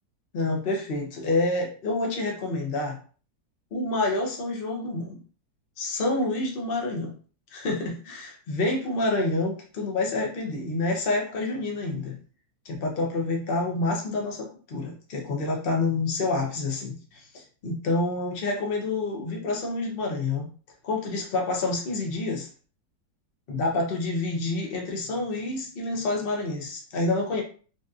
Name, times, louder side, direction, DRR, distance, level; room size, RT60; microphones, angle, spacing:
voice 1, 0.3-3.0 3.7-5.2 5.8-7.1 7.5-12.1 12.6-20.5 20.8-22.5 23.5-27.4, left 2 dB, 50° left, 1 dB, 0.6 m, -28 dB
4.0 x 2.5 x 2.4 m, 0.40 s
omnidirectional pair, 1.9 m